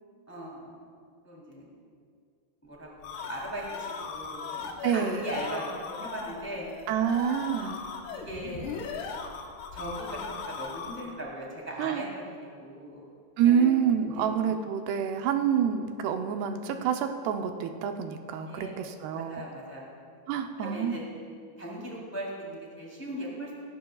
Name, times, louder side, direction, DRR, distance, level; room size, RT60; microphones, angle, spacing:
voice 1, 0.3-0.7 1.2-1.7 2.6-2.9 3.3-6.7 7.5-7.8 8.1-8.6 9.7-13.0 13.4-13.8 14.1-14.3 18.5-18.7 19.1-19.8 20.6-21.0 21.6-23.5, right 1 dB, 5° left, -4 dB, 2.2 m, -39 dB
sound 1, 2.7-11.3, left 5 dB, 85° left, 3.0 m, -38 dB
voice 2, 4.8-5.3 6.9-7.8 11.8-12.0 13.4-19.4 20.3-21.0, right 8 dB, 90° right, 6 dB, 2.8 m, -27 dB
18.0 x 16.5 x 2.3 m, 2.2 s
omnidirectional pair, 4.5 m